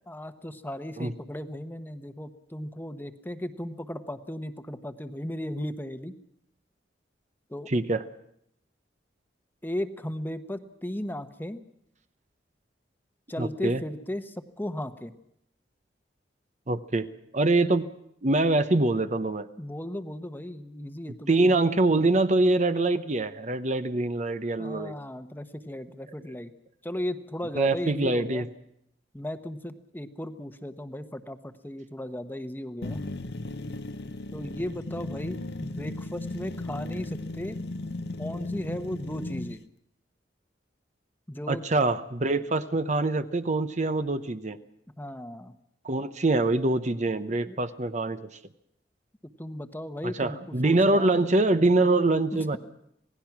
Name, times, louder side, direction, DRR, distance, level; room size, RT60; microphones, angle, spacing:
voice 1, 0.1-6.1 7.5-7.7 9.6-11.6 13.3-15.1 19.6-21.6 24.6-26.5 26.8-28.5 29.1-33.0 34.3-37.6 38.2-39.6 41.3-41.6 45.0-45.6 47.5-47.6 49.4-51.1 52.3-52.6, left 1 dB, 10° left, 9 dB, 1.1 m, -36 dB
voice 2, 7.7-8.0 13.4-13.8 16.7-17.1 17.3-17.9 18.2-19.5 21.3-25.0 27.5-28.5 41.5-44.6 45.8-48.3 50.0-52.6, right 2 dB, 40° right, 11 dB, 0.9 m, -24 dB
sound 1, 32.8-39.6, left 2 dB, 65° left, 0.9 m, -36 dB
27.0 x 18.5 x 6.1 m, 0.75 s
head